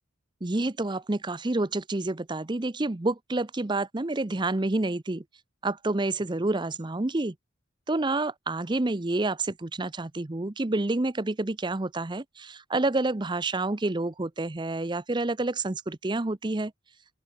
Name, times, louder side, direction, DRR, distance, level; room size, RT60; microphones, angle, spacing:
voice 1, 0.4-5.2 5.6-7.3 7.9-16.7, right 2 dB, 25° right, 0.7 m, -28 dB
open air
head